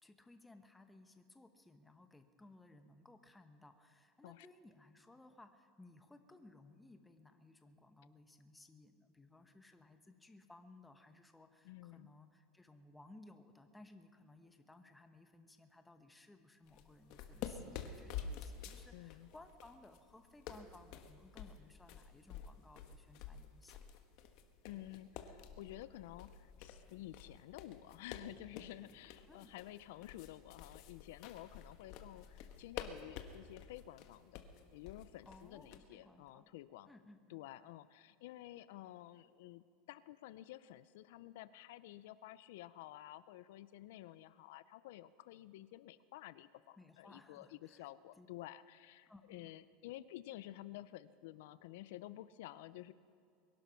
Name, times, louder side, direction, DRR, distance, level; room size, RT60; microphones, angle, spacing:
voice 1, 0.0-23.8 29.3-29.5 35.2-36.5 36.8-37.4 46.8-47.9 48.2-48.3 49.1-49.5, left 2 dB, 5° left, 7 dB, 0.9 m, -60 dB
voice 2, 11.6-12.1 18.9-19.3 24.6-34.4 34.7-36.9 37.3-52.9, left 14 dB, 75° left, 16 dB, 0.5 m, -52 dB
sound 1, 16.7-35.8, left 7 dB, 55° left, 1.2 m, -50 dB
22.0 x 11.5 x 5.8 m, 2.4 s
supercardioid pair, 155°, 0 cm